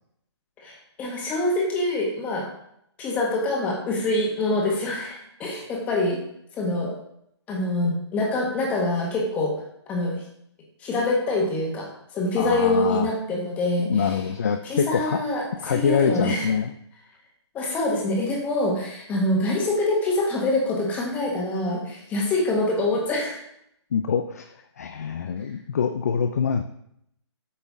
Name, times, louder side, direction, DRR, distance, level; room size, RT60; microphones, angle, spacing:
voice 1, 0.6-2.5 3.0-6.2 6.5-7.0 7.5-9.5 9.9-10.2 10.8-11.9 12.1-14.2 14.6-16.5 17.5-23.4, left 2 dB, 10° left, -1 dB, 1.3 m, -25 dB
voice 2, 12.4-13.1 13.9-15.2 15.6-16.7 23.9-24.5 24.8-26.6, left 7 dB, 35° left, 8 dB, 0.3 m, -25 dB
8.3 x 5.8 x 3.6 m, 0.74 s
hypercardioid pair, 165°, 15 cm